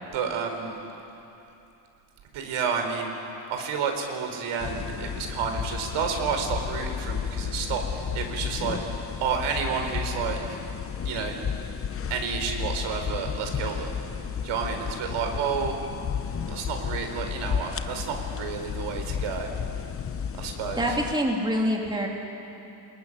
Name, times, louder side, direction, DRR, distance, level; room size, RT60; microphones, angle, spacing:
voice 1, 0.1-0.7 2.3-3.1 3.5-8.8 9.2-10.4 11.0-11.4 12.1-13.9 14.4-15.8 16.5-19.5 20.4-21.0, right 6 dB, 75° right, 4 dB, 4.3 m, -30 dB
sound 1, 4.6-21.1, left 7 dB, 30° left, 0.8 m, -33 dB
voice 2, 20.8-22.1, equal, 10° right, -1 dB, 2.9 m, -25 dB
28.5 x 21.0 x 9.9 m, 2.9 s
cardioid pair, 145°, 49 cm